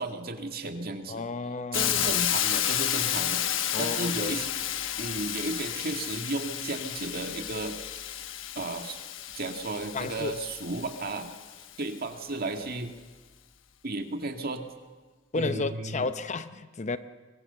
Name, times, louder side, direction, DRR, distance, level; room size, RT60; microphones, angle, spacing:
voice 1, 0.0-1.2 1.7-4.5 5.0-7.8 8.6-9.0 9.4-11.3 11.8-12.9 13.8-14.6 15.4-16.1, right 2 dB, 50° right, 5 dB, 2.1 m, -34 dB
voice 2, 1.1-2.2 3.7-4.4 9.9-10.3 15.3-17.0, left 3 dB, 35° left, 11 dB, 0.8 m, -32 dB
Hiss, 1.7-11.6, left 11 dB, 70° left, 1.1 m, -31 dB
24.0 x 22.0 x 7.0 m, 1.4 s
head